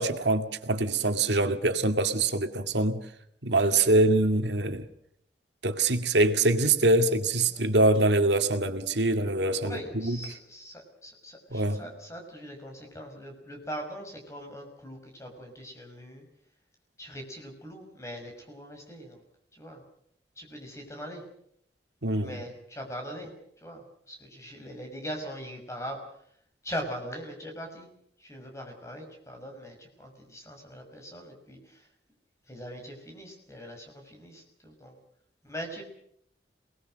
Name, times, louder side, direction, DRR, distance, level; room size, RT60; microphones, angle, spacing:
voice 1, 0.0-3.0 3.4-4.8 5.6-10.2 11.5-11.8 22.0-22.3, right 2 dB, 85° right, 2.2 m, -24 dB
voice 2, 9.6-16.3 17.0-19.2 19.5-19.8 20.4-21.2 22.2-23.3 23.6-26.0 26.6-27.9 28.2-31.9 32.5-35.0 35.4-35.8, equal, 15° left, 6.0 m, -41 dB
28.0 x 20.5 x 6.5 m
head